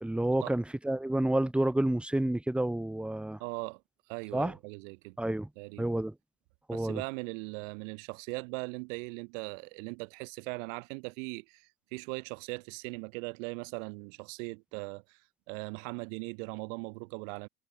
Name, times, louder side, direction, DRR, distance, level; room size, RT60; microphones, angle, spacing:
voice 1, 0.0-3.4 4.3-4.5 5.2-5.5 5.8-6.1 6.7-7.0, right 1 dB, 5° right, 0.6 m, -29 dB
voice 2, 3.4-3.8 4.1-5.2 5.6-5.9 6.7-15.2 15.5-17.5, right 32 dB, 85° right, 1.9 m, -39 dB
supercardioid pair, 85°, 37 cm